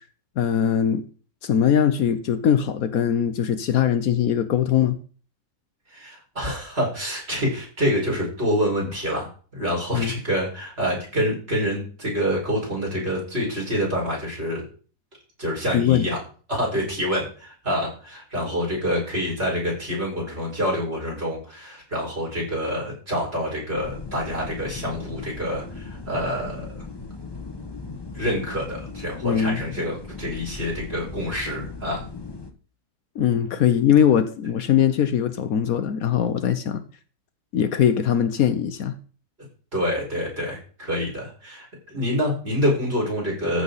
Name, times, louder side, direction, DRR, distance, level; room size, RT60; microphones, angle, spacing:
voice 1, 0.4-1.0 1.4-5.0 9.9-10.1 15.7-16.1 29.2-29.6 33.2-36.8 37.5-38.9, left 9 dB, 70° left, 1.2 m, -21 dB
voice 2, 5.9-9.3 9.5-14.6 15.4-16.2 16.5-26.8 28.1-32.0 39.7-43.6, equal, 40° right, 5.7 m, -27 dB
sound 1, 23.7-32.5, left 4 dB, 20° left, 1.0 m, -37 dB
14.0 x 7.0 x 4.1 m
omnidirectional pair, 1.7 m